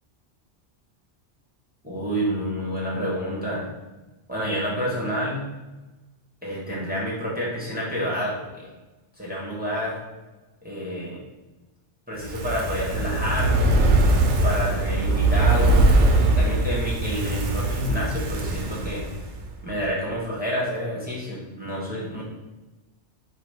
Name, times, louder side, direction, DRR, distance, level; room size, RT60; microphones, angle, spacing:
voice 1, 1.8-3.7 4.3-5.4 6.4-8.6 9.2-10.0 10.6-11.2 12.1-13.8 14.4-15.9 16.2-19.1 19.6-22.2, equal, 10° right, -6 dB, 1.1 m, -29 dB
Fire, 12.2-19.5 19.8-19.9, right 2 dB, 85° right, 1.0 m, -21 dB
3.9 x 2.8 x 4.7 m, 1.1 s
omnidirectional pair, 1.2 m